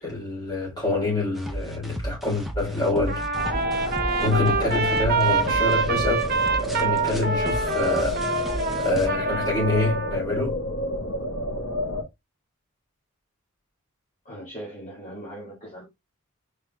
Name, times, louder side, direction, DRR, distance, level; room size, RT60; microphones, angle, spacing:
voice 1, 0.0-3.3 4.2-6.2 6.6-8.2 8.8-10.6, left 2 dB, 20° left, 3.0 m, -26 dB
sound 1, 1.3-9.1, right 1 dB, ahead, 0.5 m, -35 dB
Trumpet, 3.1-10.2, right 5 dB, 40° right, 0.6 m, -26 dB
sound 2, 3.3-12.0, left 1 dB, 65° left, 1.2 m, -29 dB
voice 2, 14.3-15.8, right 1 dB, 35° left, 1.8 m, -39 dB
4.7 x 3.6 x 2.2 m
head